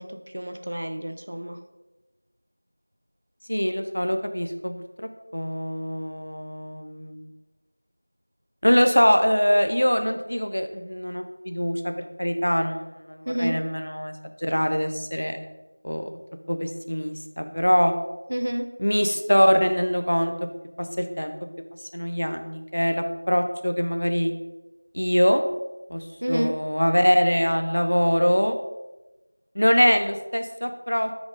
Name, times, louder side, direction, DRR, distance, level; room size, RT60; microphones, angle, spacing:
voice 1, 0.0-1.6 13.3-13.6 18.3-18.7 26.2-26.6, equal, 35° right, 7 dB, 0.5 m, -29 dB
voice 2, 3.5-4.8 5.3-7.3 8.6-15.4 15.8-16.1 16.5-17.9 18.8-20.3 20.8-21.3 21.9-24.3 24.9-25.4 25.9-28.6 29.5-31.1, equal, 70° left, 7 dB, 0.8 m, -23 dB
6.5 x 5.1 x 3.9 m, 1.1 s
figure-of-eight pair, 180°, 0 cm